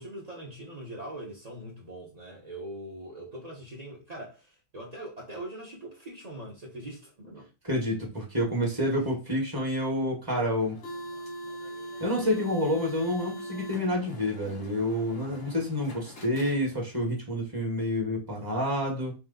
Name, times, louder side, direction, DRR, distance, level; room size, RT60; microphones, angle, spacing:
voice 1, 0.0-7.5 15.2-15.4, right 1 dB, 55° right, 0.4 m, -42 dB
voice 2, 7.7-10.8 12.0-19.1, left 1 dB, 15° right, 0.8 m, -28 dB
sound 1, 10.6-17.0, right 1 dB, 50° left, 0.9 m, -42 dB
3.2 x 3.1 x 3.9 m
omnidirectional pair, 2.4 m